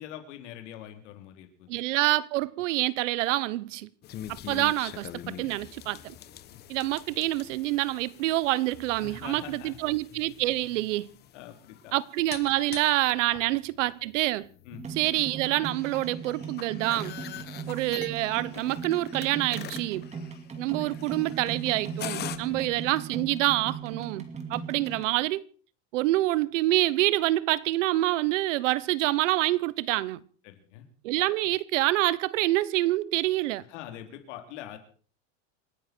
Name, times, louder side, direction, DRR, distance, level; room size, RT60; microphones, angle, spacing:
voice 1, 0.0-1.7 6.5-6.6 9.0-9.9 11.3-11.9 13.3-13.4 14.7-14.9 17.3-17.5 22.5-22.7 30.4-30.9 33.7-34.8, left 11 dB, 70° left, 3.7 m, -44 dB
voice 2, 1.7-3.9 4.3-6.1 6.7-11.1 11.9-14.5 15.0-17.1 17.7-20.1 20.6-24.2 24.5-25.4 25.9-30.2 31.0-33.6, right 17 dB, 75° right, 1.1 m, -27 dB
sound 1, 4.0-22.4, left 12 dB, 25° left, 1.1 m, -44 dB
shimbashi festival taiko, 14.7-25.1, right 6 dB, 20° right, 2.4 m, -39 dB
28.0 x 10.5 x 4.5 m
supercardioid pair, 160°, 37 cm